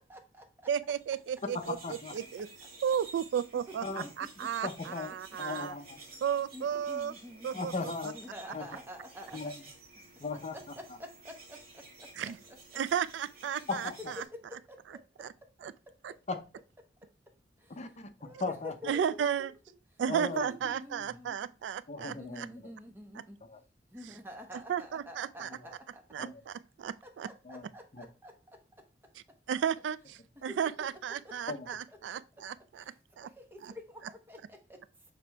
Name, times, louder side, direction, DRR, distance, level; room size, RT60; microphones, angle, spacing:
voice 1, 0.0-0.4 4.2-4.3 5.8-7.6 8.1-9.5 10.3-11.6 12.0-12.1 14.2-14.8 18.2-19.5 20.2-21.4 22.1-23.4 23.9-26.0 27.0-28.3 30.5-30.7 31.1-31.8 33.2-34.6, left 1 dB, 10° right, 1.0 m, -48 dB
voice 2, 0.7-1.8 2.1-2.5 2.8-5.7 6.2-7.1 7.4-7.7 12.2-12.4 12.7-13.9 14.2-14.3 15.2-15.3 15.6-15.7 16.0-16.1 18.9-19.5 20.0-22.5 24.7-25.5 26.1-27.3 29.5-32.8 33.2-33.3 33.6-33.7, right 8 dB, 70° right, 0.3 m, -33 dB
sound 1, 1.0-14.3, right 3 dB, 55° right, 2.2 m, -52 dB
voice 3, 1.5-2.1 3.8-4.1 4.6-5.1 5.4-6.0 7.5-8.2 8.5-8.7 9.3-9.6 10.2-10.6 13.7-14.1 16.3-16.4 17.8-18.7 20.1-20.5 21.0-21.1 21.9-22.4 23.5-23.6 26.2-26.4 27.4-27.7 27.9-28.1 31.5-31.7, left 3 dB, 40° left, 0.7 m, -37 dB
6.6 x 4.3 x 3.4 m
head